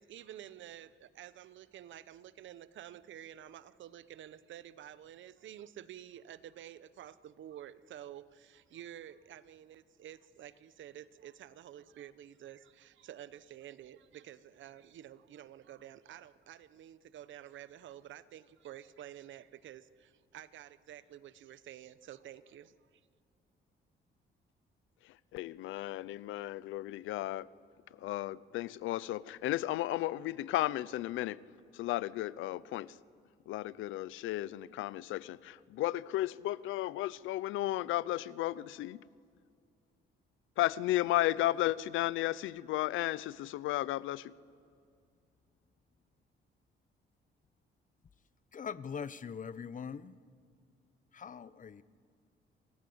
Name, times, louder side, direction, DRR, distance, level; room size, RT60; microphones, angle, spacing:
voice 1, 0.0-23.0, right 11 dB, 75° right, 1.0 m, -50 dB
voice 2, 25.3-27.5 28.0-31.4 31.7-32.9 33.5-39.0 40.6-44.3, left 15 dB, 90° left, 0.7 m, -34 dB
voice 3, 48.5-50.1 51.1-51.8, left 6 dB, 40° left, 1.0 m, -42 dB
28.5 x 26.0 x 8.0 m
cardioid pair, 90°, 20 cm